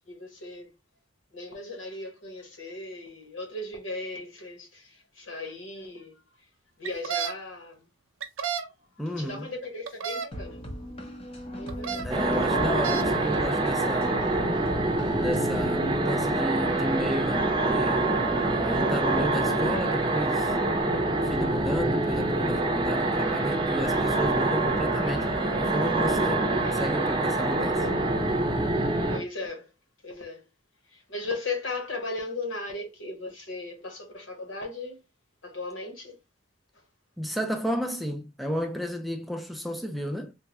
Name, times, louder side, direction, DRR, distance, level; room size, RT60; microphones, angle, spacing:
voice 1, 0.1-0.7 1.3-6.2 6.8-7.9 9.2-10.6 11.5-12.2 18.5-19.0 25.0-25.3 29.1-29.7 30.0-30.4 30.9-35.0 35.4-36.2, left 2 dB, 75° left, 1.2 m, -37 dB
sound 1, 6.8-7.3 8.2-8.7 9.9-10.3 11.7-12.0 12.6-13.1, right 7 dB, 85° right, 0.6 m, -31 dB
voice 2, 9.0-9.5 12.0-14.2 15.2-18.1 18.6-20.6 21.2-27.9 37.2-40.3, equal, ahead, 0.3 m, -32 dB
sound 2, 10.3-15.6, equal, 30° left, 0.7 m, -40 dB
sound 3, 12.1-29.2, right 2 dB, 25° right, 0.7 m, -25 dB
3.7 x 2.3 x 2.9 m
head